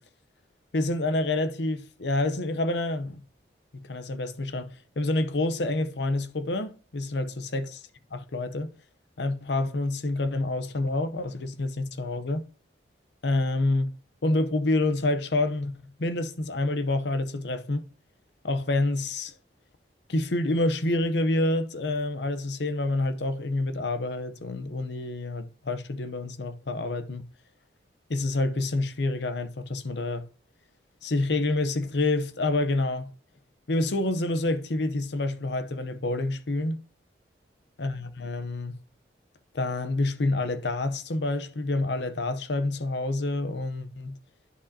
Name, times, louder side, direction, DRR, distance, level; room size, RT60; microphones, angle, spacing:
voice 1, 0.7-3.2 3.7-7.8 8.1-8.7 9.2-12.4 13.2-13.9 14.2-15.7 16.0-17.9 18.4-19.3 20.1-27.3 28.1-30.2 31.0-33.1 33.7-36.8 37.8-38.8 39.5-44.1, left 2 dB, 70° left, 0.7 m, -28 dB
11.0 x 5.1 x 2.8 m
head